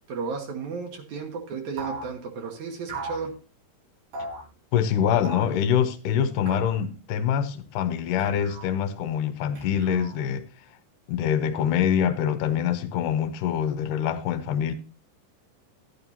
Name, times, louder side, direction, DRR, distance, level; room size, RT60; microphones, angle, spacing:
voice 1, 0.1-3.3, right 5 dB, 65° right, 2.5 m, -33 dB
sound 1, 1.8-2.1 2.9-3.3 4.1-4.4 5.2-5.6 6.5-6.8 8.2-8.7 9.6-10.3, right 2 dB, 85° right, 5.7 m, -37 dB
voice 2, 4.7-10.4 11.1-14.7, left 8 dB, 80° left, 2.3 m, -25 dB
11.0 x 11.0 x 2.8 m
omnidirectional pair, 3.9 m